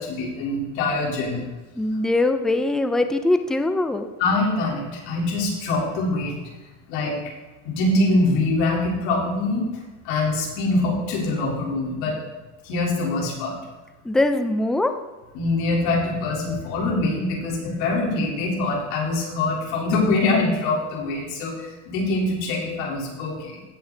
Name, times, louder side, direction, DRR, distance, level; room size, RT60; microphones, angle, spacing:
voice 1, 0.0-1.4 4.2-6.4 6.9-7.2 7.6-9.7 10.0-12.2 12.6-13.6 15.3-23.6, left 2 dB, 80° left, -3 dB, 3.6 m, -24 dB
voice 2, 1.8-4.1 14.0-14.9, left 2 dB, ahead, 8 dB, 0.4 m, -22 dB
16.0 x 5.6 x 3.9 m, 1.2 s
cardioid pair, 140°, 38 cm